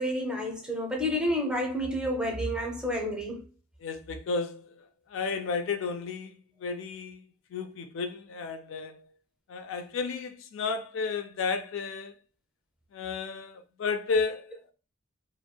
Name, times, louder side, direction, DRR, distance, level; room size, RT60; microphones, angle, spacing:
voice 1, 0.0-3.5, equal, 5° right, 0.5 m, -30 dB
voice 2, 3.8-7.2 7.5-9.1 9.5-12.2 12.9-14.6, left 4 dB, 70° left, 0.4 m, -33 dB
3.0 x 2.6 x 2.2 m
head